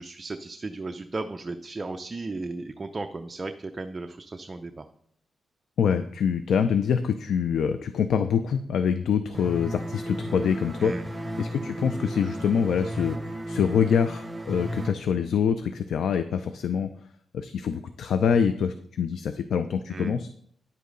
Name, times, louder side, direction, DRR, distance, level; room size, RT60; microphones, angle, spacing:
voice 1, 0.0-4.9 10.8-11.0 19.9-20.2, right 3 dB, 30° right, 7 dB, 0.5 m, -35 dB
voice 2, 5.8-10.9 11.4-16.9 17.3-20.3, left 7 dB, 80° left, 9 dB, 0.5 m, -25 dB
sound 1, 9.3-14.9, equal, 10° right, 0.9 m, -34 dB
10.5 x 8.3 x 3.9 m, 0.65 s
cardioid pair, 100°, 0 cm